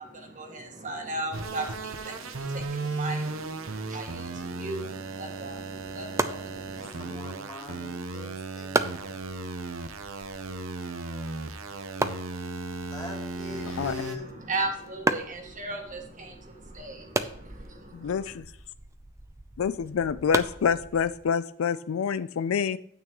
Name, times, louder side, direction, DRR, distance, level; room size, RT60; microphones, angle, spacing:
voice 1, 0.0-7.2 13.5-13.7 14.2-18.3, right 2 dB, 40° right, 2 dB, 1.6 m, -37 dB
sound 1, 1.3-14.2, right 3 dB, 75° right, 0.9 m, -36 dB
sound 2, 6.1-21.3, right 2 dB, 15° right, 0.5 m, -36 dB
voice 2, 6.8-9.2 12.8-14.4, left 3 dB, 20° left, -2 dB, 2.7 m, -43 dB
voice 3, 17.9-18.5 19.6-22.8, left 6 dB, 75° left, 15 dB, 0.4 m, -27 dB
9.5 x 8.6 x 3.0 m, 0.70 s
head